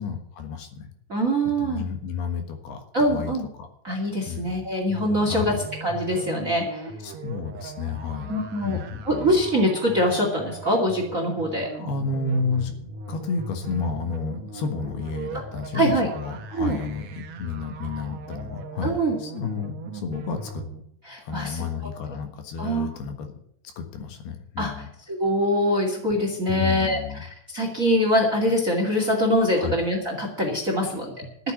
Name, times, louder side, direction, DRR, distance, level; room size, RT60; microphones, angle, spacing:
voice 1, 0.0-0.9 1.6-3.3 3.6-3.7 4.3-4.7 5.3-5.6 7.0-8.3 8.6-9.4 11.7-12.7 13.1-20.6 21.2-23.4 23.8-24.9 26.5-27.2 29.6-29.8, left 5 dB, 70° left, 6 dB, 3.3 m, -31 dB
voice 2, 1.1-1.8 2.9-3.4 3.8-6.9 8.3-8.8 9.1-11.7 15.7-16.1 16.5-16.8 18.8-19.1 21.0-21.6 22.6-22.9 24.6-31.5, equal, 25° right, 2 dB, 2.0 m, -24 dB
sound 1, 4.8-20.8, right 4 dB, 70° right, 1.7 m, -38 dB
12.5 x 8.2 x 9.5 m, 0.71 s
omnidirectional pair, 5.0 m